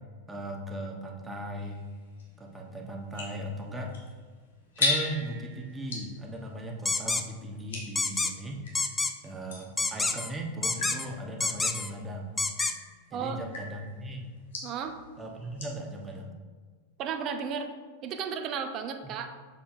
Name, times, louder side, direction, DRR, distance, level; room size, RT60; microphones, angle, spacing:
voice 1, 0.3-1.8 2.4-3.9 4.8-8.6 9.2-12.4 13.1-14.3 15.2-16.3 19.0-19.1, right 1 dB, 10° right, 1 dB, 1.1 m, -38 dB
sound 1, 1.6-8.8 9.5-15.9, left 3 dB, 60° left, 1.6 m, -38 dB
sound 2, 6.9-7.2 8.0-8.3 8.7-9.1 9.8-10.3 10.6-11.1 11.4-11.9 12.4-12.7, left 3 dB, 10° left, 0.4 m, -28 dB
voice 2, 14.6-14.9 17.0-17.7 18.0-19.3, right 6 dB, 35° right, 7 dB, 0.6 m, -33 dB
7.0 x 6.9 x 2.6 m, 1.5 s
figure-of-eight pair, 90°, 0 cm